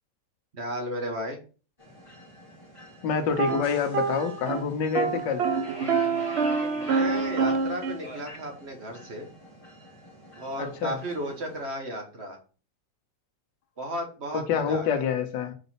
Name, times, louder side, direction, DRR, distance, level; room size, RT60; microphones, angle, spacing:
voice 1, 0.5-1.4 6.7-9.3 10.4-12.4 13.8-15.0, right 1 dB, 40° right, 1.4 m, -34 dB
sound 1, 1.8-11.6, equal, 15° left, 2.1 m, -45 dB
voice 2, 3.0-5.5 10.6-11.0 14.3-15.5, left 6 dB, 80° left, 1.6 m, -27 dB
sound 2, 3.3-4.7 4.9-8.0, right 5 dB, 80° right, 0.5 m, -26 dB
5.0 x 4.0 x 5.6 m
omnidirectional pair, 1.9 m